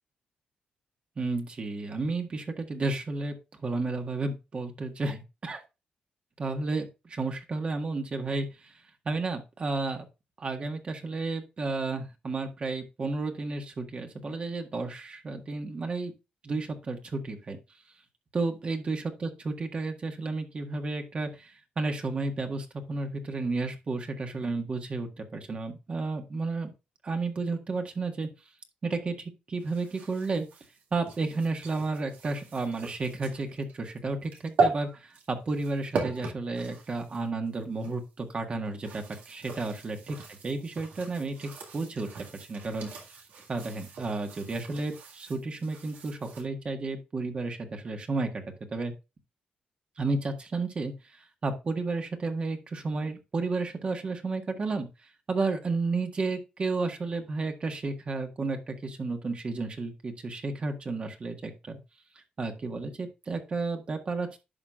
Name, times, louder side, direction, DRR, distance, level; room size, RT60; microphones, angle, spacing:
voice 1, 1.2-3.3 3.6-5.6 6.4-8.7 9.0-10.1 10.4-16.1 16.4-17.6 18.3-26.7 27.0-28.3 28.8-30.4 30.9-40.2 40.4-42.9 43.5-48.4 48.7-48.9 50.0-54.9 55.3-61.8 62.4-64.4, right 3 dB, 40° right, 4 dB, 1.6 m, -32 dB
sound 1, 29.6-38.0 38.7-46.4, right 4 dB, 85° right, 2.0 m, -37 dB
10.5 x 6.0 x 2.4 m, 0.27 s
cardioid pair, 90°, 3 cm